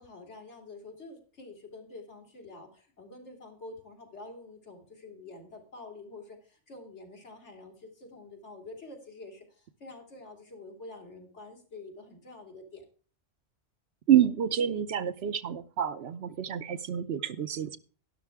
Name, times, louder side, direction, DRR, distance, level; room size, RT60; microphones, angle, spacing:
voice 1, 0.0-12.8, left 2 dB, 70° left, 3.3 m, -47 dB
voice 2, 14.1-17.8, right 10 dB, 65° right, 0.9 m, -27 dB
12.0 x 11.5 x 3.5 m
omnidirectional pair, 1.2 m